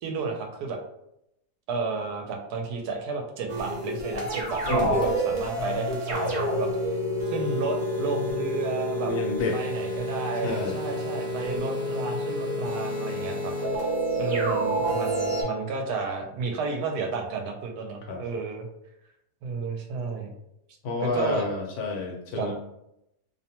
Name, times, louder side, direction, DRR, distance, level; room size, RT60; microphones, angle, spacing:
voice 1, 0.0-0.8 1.7-6.7 7.3-9.1 9.5-18.7 19.4-20.3 21.0-21.4 22.4-22.5, right 4 dB, 75° right, 2 dB, 1.1 m, -32 dB
sound 1, 3.5-15.4, equal, 45° right, 0.9 m, -28 dB
voice 2, 9.0-9.6 10.4-10.8 18.1-18.2 20.8-22.5, left 3 dB, 70° left, 0 dB, 1.1 m, -29 dB
2.7 x 2.1 x 2.8 m, 0.81 s
omnidirectional pair, 1.7 m